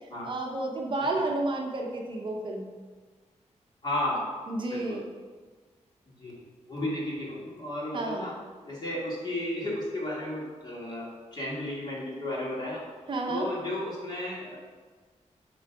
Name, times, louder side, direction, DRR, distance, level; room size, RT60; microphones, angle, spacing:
voice 1, 0.2-2.7 4.5-5.0 7.9-8.2 13.1-13.5, right 2 dB, 40° right, 0 dB, 0.8 m, -31 dB
voice 2, 3.8-4.4 4.7-5.0 6.2-6.4 6.7-8.3 8.7-12.8 13.3-14.6, left 1 dB, 35° left, -6 dB, 2.4 m, -33 dB
9.4 x 3.8 x 6.0 m, 1.4 s
wide cardioid pair, 180°, 12 cm